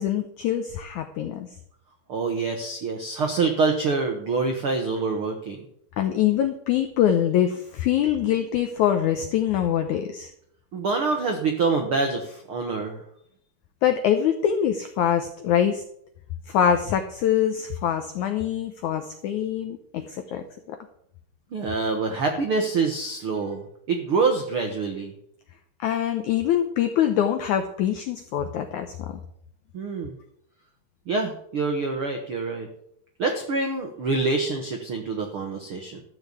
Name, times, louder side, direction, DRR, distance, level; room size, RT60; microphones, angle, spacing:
voice 1, 0.0-1.5 6.0-10.3 13.8-15.8 16.5-20.8 25.8-29.2, left 10 dB, 80° left, 7 dB, 1.7 m, -24 dB
voice 2, 2.1-5.7 10.7-13.0 21.5-23.6 23.9-25.1 29.7-30.2 31.1-32.7 33.2-36.0, right 4 dB, 75° right, 3 dB, 1.2 m, -26 dB
13.5 x 5.5 x 8.2 m, 0.69 s
omnidirectional pair, 4.5 m